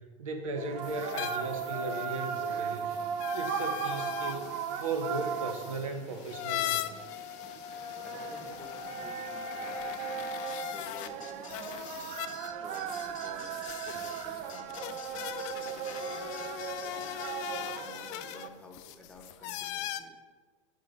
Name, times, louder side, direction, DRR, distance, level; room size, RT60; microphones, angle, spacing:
voice 1, 0.0-3.1 3.3-6.8, right 3 dB, 80° right, 5 dB, 0.7 m, -37 dB
sound 1, 0.6-18.5, right 8 dB, 40° right, 0.4 m, -38 dB
sound 2, 0.8-11.1 11.5-20.0, left 12 dB, 45° left, 0.4 m, -40 dB
voice 2, 7.6-10.3 10.6-12.1 12.6-13.5 13.9-16.6 17.2-20.2, left 1 dB, 5° left, 1 dB, 1.0 m, -52 dB
sound 3, 10.5-17.4, left 5 dB, 75° left, 0.8 m, -48 dB
7.5 x 3.9 x 3.4 m, 1.4 s
hypercardioid pair, 90°, 17 cm